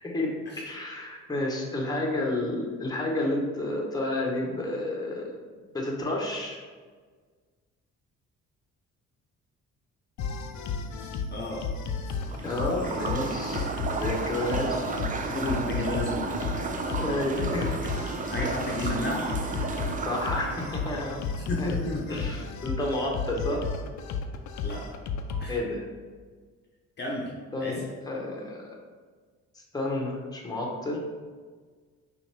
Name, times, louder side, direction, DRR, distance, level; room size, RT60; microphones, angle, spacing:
voice 1, 0.0-5.3 5.7-6.6 12.4-14.8 17.0-17.8 20.0-21.2 21.6-21.8 22.1-23.7 25.5-25.8 27.5-28.6 29.7-31.0, left 1 dB, 15° left, -1 dB, 1.0 m, -30 dB
sound 1, 10.2-25.5, left 5 dB, 70° left, 0.5 m, -33 dB
voice 2, 11.0-11.7 12.0-12.1 14.6-18.0 18.3-19.3 21.5-22.3 24.6-24.9 25.4-25.6 27.0-27.3 27.6-27.9, left 1 dB, 35° left, -3 dB, 0.8 m, -33 dB
Wet FX, 12.2-20.9, right 4 dB, 30° right, 0.4 m, -33 dB
6.1 x 2.5 x 3.3 m, 1.5 s
cardioid pair, 90°, 30 cm